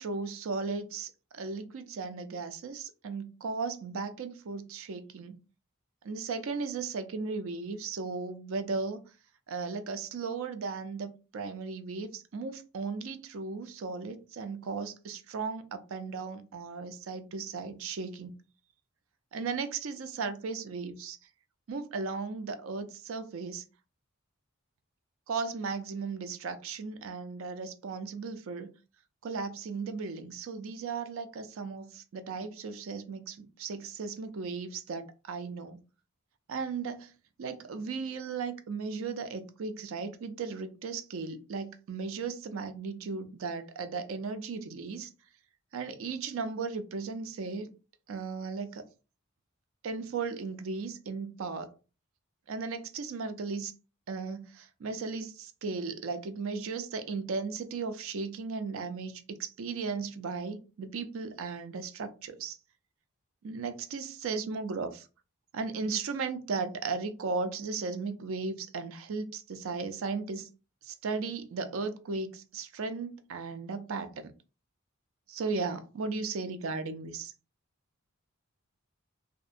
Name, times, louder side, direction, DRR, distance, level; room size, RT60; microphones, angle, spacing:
voice 1, 0.0-5.3 6.0-9.0 9.5-18.3 19.3-21.2 21.7-23.6 25.3-28.7 29.2-35.8 36.5-37.1 37.4-45.1 45.7-47.7 48.1-48.9 49.8-51.7 52.5-53.7 54.1-62.6 63.4-65.1 65.5-70.5 70.8-74.3 75.3-77.3, right 4 dB, 65° right, 0.4 m, -36 dB
2.6 x 2.1 x 2.4 m
head